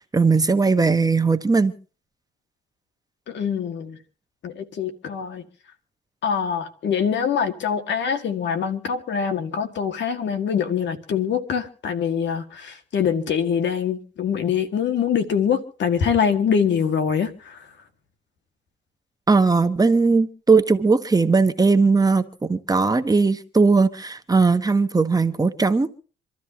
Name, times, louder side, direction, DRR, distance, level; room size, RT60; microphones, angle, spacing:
voice 1, 0.1-1.7 19.3-25.9, right 4 dB, 20° right, 1.0 m, -18 dB
voice 2, 3.3-4.0 4.4-5.4 6.2-17.6, left 7 dB, 65° left, 2.0 m, -24 dB
27.0 x 13.0 x 2.9 m
cardioid pair, 90°, 20 cm